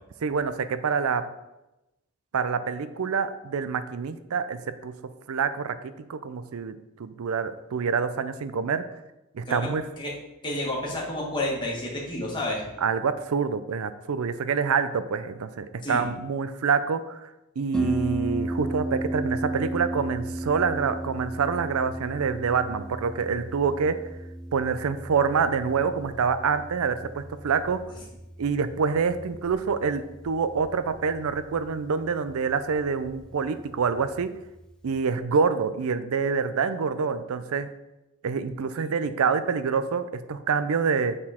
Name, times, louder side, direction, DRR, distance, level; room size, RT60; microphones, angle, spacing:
voice 1, 0.2-1.3 2.3-8.9 9.3-9.8 12.8-17.3 17.6-24.0 24.5-27.8 28.4-34.3 34.8-37.7 38.2-41.2, right 5 dB, 75° right, 12 dB, 0.5 m, -26 dB
voice 2, 10.4-12.6 15.8-16.0, left 1 dB, 20° left, -4 dB, 1.6 m, -30 dB
Harp, 17.7-35.2, right 1 dB, 5° left, 0.4 m, -36 dB
7.5 x 4.2 x 4.3 m, 0.97 s
head